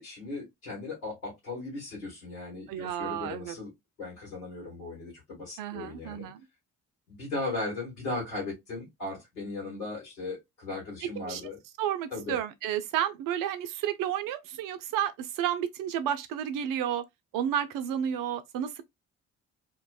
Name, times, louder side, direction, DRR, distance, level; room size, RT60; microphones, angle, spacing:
voice 1, 0.0-3.7 4.0-6.3 7.1-11.6 12.1-12.4, left 2 dB, 80° left, 1.3 m, -37 dB
voice 2, 2.7-3.5 5.6-6.4 11.0-11.4 11.8-17.0 17.3-18.8, right 10 dB, 55° right, 0.5 m, -31 dB
2.5 x 2.2 x 2.3 m
figure-of-eight pair, 40°, 39 cm